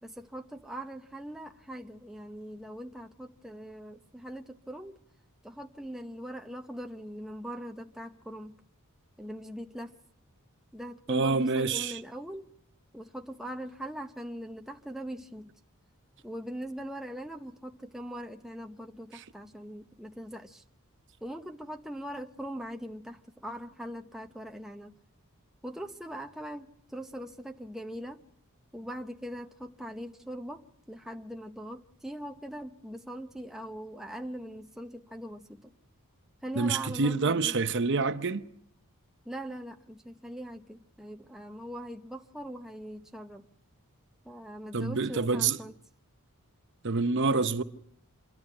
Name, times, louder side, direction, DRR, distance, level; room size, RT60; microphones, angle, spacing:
voice 1, 0.0-5.0 5.4-8.6 9.2-10.0 10.7-12.5 12.9-15.5 16.2-20.6 21.2-24.9 25.6-28.2 28.7-35.7 36.4-37.6 39.2-43.5 44.2-45.7, equal, ahead, 0.8 m, -41 dB
voice 2, 11.1-12.0 36.6-38.4 44.7-45.6 46.8-47.6, right 4 dB, 55° right, 0.8 m, -27 dB
26.5 x 11.5 x 9.7 m
head